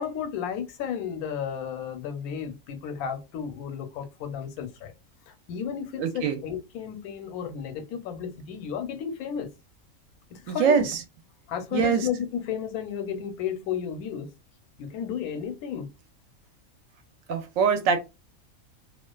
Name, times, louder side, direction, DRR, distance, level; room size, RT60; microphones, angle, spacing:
voice 1, 0.0-4.9 5.3-9.5 10.3-10.9 11.5-14.3 14.8-15.9, left 8 dB, 90° left, 1.1 m, -33 dB
voice 2, 6.0-6.4 10.5-11.0 11.7-12.1 17.3-18.0, right 6 dB, 70° right, 0.9 m, -23 dB
2.3 x 2.3 x 2.2 m
omnidirectional pair, 1.5 m